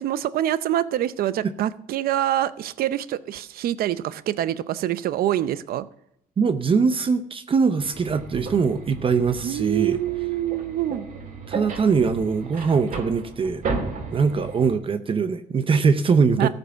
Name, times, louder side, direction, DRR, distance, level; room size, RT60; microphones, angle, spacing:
voice 1, 0.0-5.8 9.4-11.1 16.4-16.5, right 12 dB, 75° right, 15 dB, 0.6 m, -25 dB
voice 2, 6.4-10.0 11.5-13.6 14.1-16.5, right 5 dB, 35° right, 10 dB, 0.7 m, -22 dB
sound 1, 7.8-14.8, right 4 dB, 55° right, 2.6 m, -34 dB
14.5 x 5.4 x 6.9 m, 0.73 s
cardioid pair, 115°, 16 cm